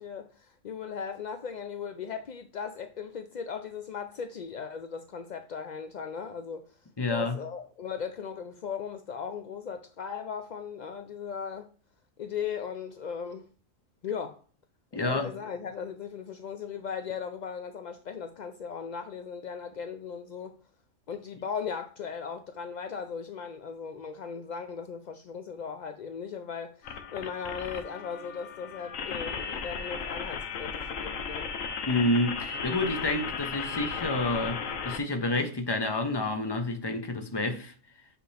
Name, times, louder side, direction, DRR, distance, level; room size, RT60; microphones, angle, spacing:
voice 1, 0.0-6.8 7.1-11.7 12.2-13.5 14.0-14.4 14.9-20.6 21.1-31.5, left 6 dB, 65° left, 0.4 m, -38 dB
voice 2, 7.0-7.4 14.9-15.3 31.9-37.7, left 2 dB, 25° left, 0.8 m, -29 dB
sound 1, 26.8-35.0, left 6 dB, 80° left, 1.2 m, -35 dB
7.8 x 4.3 x 3.3 m
omnidirectional pair, 1.4 m